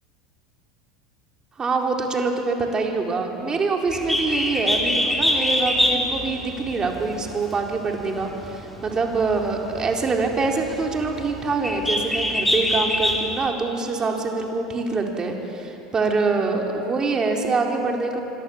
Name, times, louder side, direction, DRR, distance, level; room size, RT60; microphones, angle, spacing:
voice 1, 1.6-18.2, right 3 dB, 25° right, 1 dB, 4.2 m, -25 dB
Bird, 3.9-13.5, left 1 dB, 5° left, 3.7 m, -25 dB
27.0 x 25.5 x 7.3 m, 2.9 s
figure-of-eight pair, 75°, 3 cm